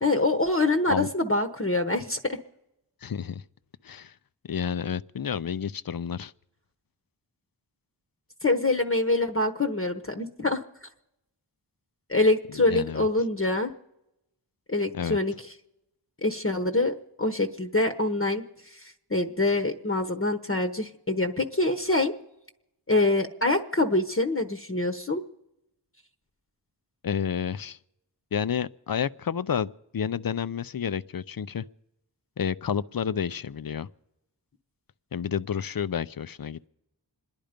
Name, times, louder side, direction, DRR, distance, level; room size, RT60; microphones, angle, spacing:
voice 1, 0.0-2.4 8.4-10.6 12.1-13.7 14.7-15.3 16.2-18.4 18.7-22.1 22.9-25.2, left 2 dB, 30° left, 1.0 m, -25 dB
voice 2, 3.0-3.4 3.8-4.1 4.5-6.3 12.7-13.1 14.9-15.2 27.0-27.8 28.3-31.6 32.4-33.9 35.1-36.7, left 8 dB, 50° left, 0.6 m, -30 dB
26.5 x 10.5 x 5.1 m
wide cardioid pair, 55°, 44 cm